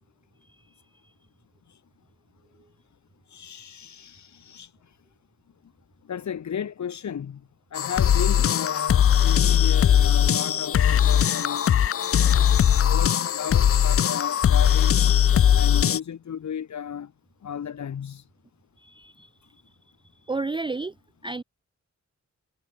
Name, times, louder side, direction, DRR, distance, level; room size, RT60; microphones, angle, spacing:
voice 1, 3.3-4.7 6.1-7.4 7.7-11.8 12.2-12.6 12.8-15.0 15.5-17.1 17.4-18.2, left 8 dB, 75° left, 1.5 m, -34 dB
sound 1, 7.8-16.0, left 9 dB, 50° left, 0.5 m, -20 dB
voice 2, 18.8-19.3 20.3-20.9 21.2-21.4, right 3 dB, 15° right, 0.5 m, -31 dB
wide cardioid pair, 115°, 29 cm